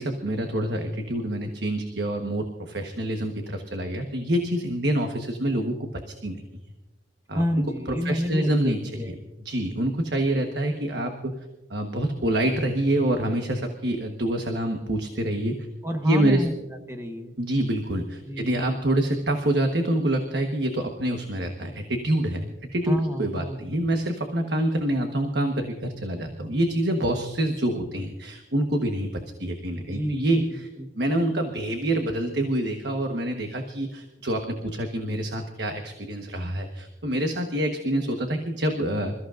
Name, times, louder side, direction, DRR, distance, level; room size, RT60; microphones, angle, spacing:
voice 1, 0.0-5.9 6.2-6.4 7.3-7.4 8.0-8.8 9.1-9.2 9.4-11.3 11.7-15.6 16.0-16.5 17.4-29.1 29.4-30.7 31.0-39.1, right 1 dB, 60° right, 4 dB, 1.3 m, -26 dB
voice 2, 7.3-9.1 15.8-16.5 16.9-17.3 18.2-18.7 22.9-23.7 29.9-30.4 30.8-30.9, equal, 15° right, 5 dB, 1.2 m, -29 dB
27.0 x 14.5 x 2.6 m, 1.1 s
head